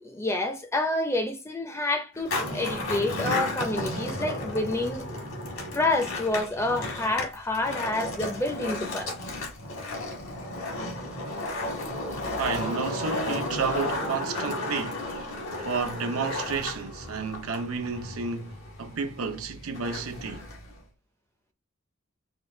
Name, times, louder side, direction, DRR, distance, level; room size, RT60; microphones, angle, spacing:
voice 1, 0.0-5.1 5.7-9.1, left 2 dB, 10° left, 0.5 m, -28 dB
Skateboard, 2.1-20.8, left 2 dB, 75° left, 1.5 m, -33 dB
voice 2, 12.4-20.5, right 5 dB, 85° right, 0.7 m, -31 dB
4.8 x 2.4 x 3.1 m
head